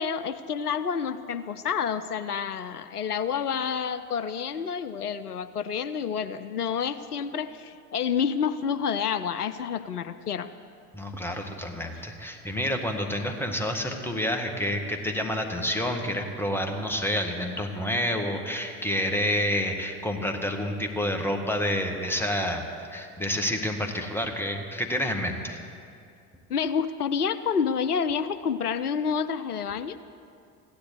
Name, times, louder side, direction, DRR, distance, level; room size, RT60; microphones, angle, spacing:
voice 1, 0.0-10.5 26.5-30.0, left 7 dB, 85° left, 12 dB, 0.5 m, -29 dB
voice 2, 10.9-22.6 22.9-25.6, equal, 5° left, 3 dB, 1.9 m, -29 dB
15.5 x 10.5 x 8.1 m, 2.4 s
figure-of-eight pair, 60°, 45 cm